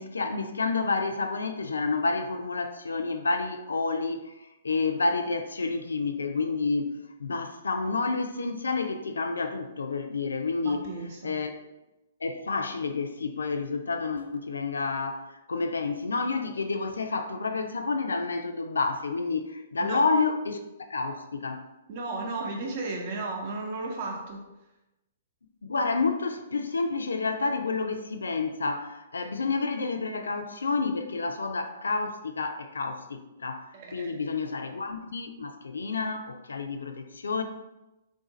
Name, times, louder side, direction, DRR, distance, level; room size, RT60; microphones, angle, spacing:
voice 1, 0.0-10.9 11.2-11.7 12.2-20.6 20.9-21.6 25.6-37.4, left 4 dB, 80° left, 6 dB, 0.4 m, -29 dB
voice 2, 10.6-11.3 19.8-20.0 21.9-24.4 33.7-34.1, right 3 dB, 50° right, 0 dB, 0.7 m, -34 dB
3.7 x 2.5 x 3.9 m, 0.98 s
hypercardioid pair, 120°, 0 cm